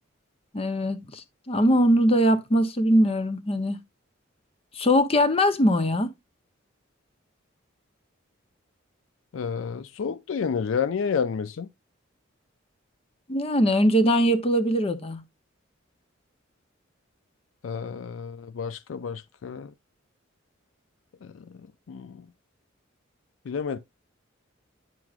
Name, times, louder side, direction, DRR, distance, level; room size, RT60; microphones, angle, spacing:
voice 1, 0.5-3.8 4.7-6.1 13.3-15.2, equal, 30° left, 0.7 m, -21 dB
voice 2, 9.3-11.7 17.6-19.7 21.2-22.3 23.5-23.8, left 6 dB, 75° left, 0.4 m, -30 dB
9.0 x 6.0 x 2.4 m
head